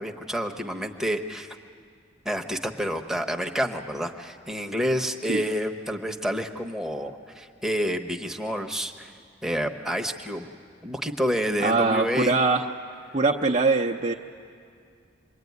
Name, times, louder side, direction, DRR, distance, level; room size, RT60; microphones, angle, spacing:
voice 1, 0.0-1.5 2.2-9.1 9.4-10.5 10.8-12.4, equal, ahead, 3 dB, 1.0 m, -29 dB
voice 2, 11.6-12.6 13.1-14.1, right 3 dB, 35° right, -2 dB, 0.7 m, -22 dB
26.5 x 22.0 x 9.5 m, 2.3 s
head